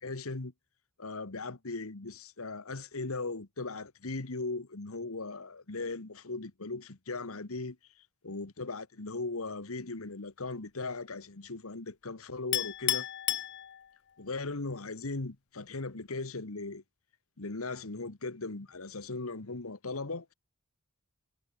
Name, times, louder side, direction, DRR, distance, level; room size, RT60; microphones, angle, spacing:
voice 1, 0.0-0.5 1.0-7.8 8.2-13.1 14.2-16.8 17.4-20.3, left 3 dB, 75° left, 1.5 m, -38 dB
Chink clink, 12.5-14.2, left 15 dB, 55° left, 0.6 m, -32 dB
head